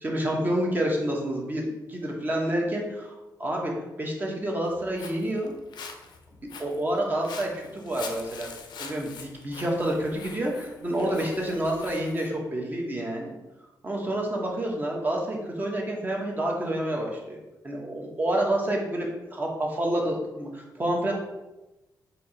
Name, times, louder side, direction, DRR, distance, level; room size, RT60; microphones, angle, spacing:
voice 1, 0.0-3.1 3.4-3.7 4.0-5.5 6.6-8.5 8.8-13.3 13.8-17.4 17.6-21.1, right 1 dB, 25° right, 0 dB, 0.9 m, -28 dB
Walk footsteps, 4.7-12.3, left 5 dB, 80° left, 0.5 m, -44 dB
4.4 x 2.7 x 4.3 m, 1.0 s
wide cardioid pair, 155°, 7 cm